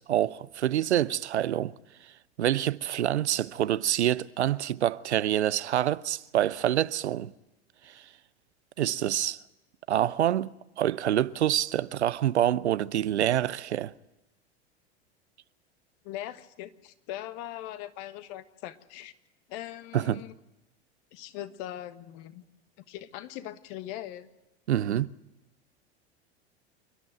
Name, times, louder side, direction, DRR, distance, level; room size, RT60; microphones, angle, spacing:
voice 1, 0.0-1.7 2.4-7.3 8.8-9.4 9.9-10.5 10.8-13.9 19.9-20.2 24.7-25.1, right 11 dB, 85° right, 0.6 m, -26 dB
voice 2, 16.0-19.1 19.5-20.3 21.1-22.4 22.9-24.3, left 13 dB, 55° left, 1.4 m, -40 dB
28.0 x 11.0 x 9.1 m
hypercardioid pair, 90°, 33 cm